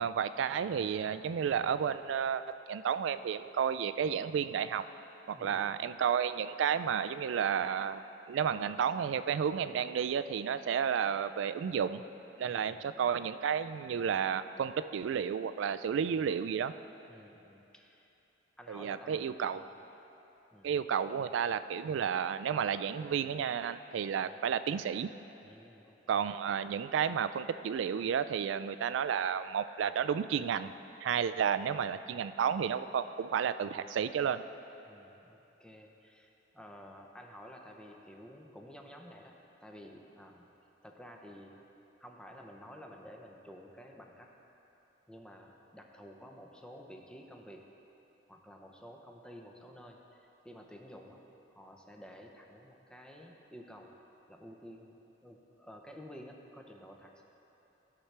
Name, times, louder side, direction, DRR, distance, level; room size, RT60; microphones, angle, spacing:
voice 1, 0.0-4.8 5.3-8.0 8.3-12.0 12.4-16.7 18.7-19.6 20.6-25.1 26.1-30.7 31.0-34.4, right 7 dB, 90° right, 13 dB, 0.3 m, -32 dB
voice 2, 5.3-5.9 12.5-12.8 17.1-18.1 18.6-19.2 19.5-19.7 20.5-20.7 24.3-24.4 25.4-26.2 34.8-40.5 40.8-41.6 42.0-44.3 45.1-47.6 48.3-51.2 51.6-53.9 54.3-57.2, equal, 5° left, 1 dB, 0.6 m, -52 dB
14.5 x 6.0 x 3.3 m, 3.0 s
head